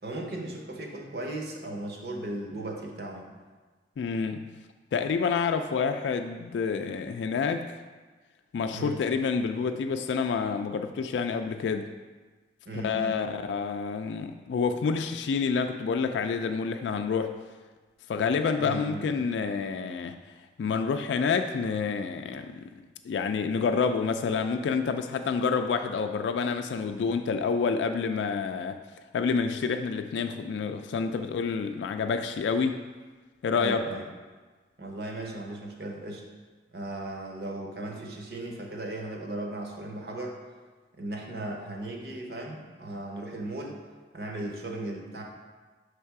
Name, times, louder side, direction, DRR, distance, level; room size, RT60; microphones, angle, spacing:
voice 1, 0.0-3.3 8.7-9.0 12.7-13.3 18.6-19.1 33.5-34.1 34.8-36.2 36.7-40.4 41.0-43.8 44.1-45.2, right 2 dB, 60° right, 1 dB, 0.9 m, -37 dB
voice 2, 4.0-4.5 4.9-7.7 8.5-11.9 12.8-17.4 18.1-20.2 20.6-22.7 23.0-28.8 29.1-32.8 33.4-33.8, left 5 dB, 85° left, 7 dB, 0.3 m, -28 dB
6.4 x 3.3 x 4.6 m, 1.3 s
head